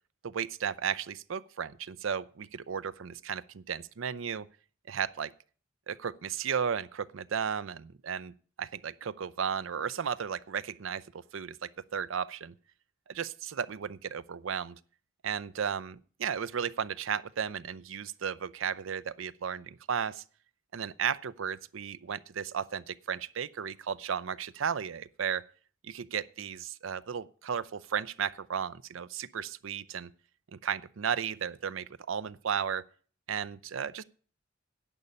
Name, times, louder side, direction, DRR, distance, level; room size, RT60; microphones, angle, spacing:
voice 1, 0.2-4.5 4.9-5.3 5.9-12.5 13.1-14.8 15.2-20.2 20.7-25.5 25.8-30.1 30.5-32.8 33.3-34.0, right 7 dB, 75° right, 0.5 m, -34 dB
10.5 x 5.4 x 8.4 m
head